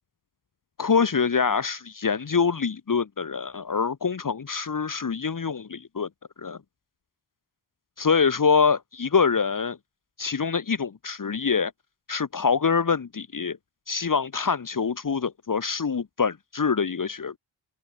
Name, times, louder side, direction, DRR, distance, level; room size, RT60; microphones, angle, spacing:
voice 1, 0.8-6.1 6.4-6.6 8.0-9.8 10.2-11.7 12.1-13.6 13.9-17.4, left 5 dB, 45° left, 2.1 m, -25 dB
open air
wide cardioid pair, 125°, 45 cm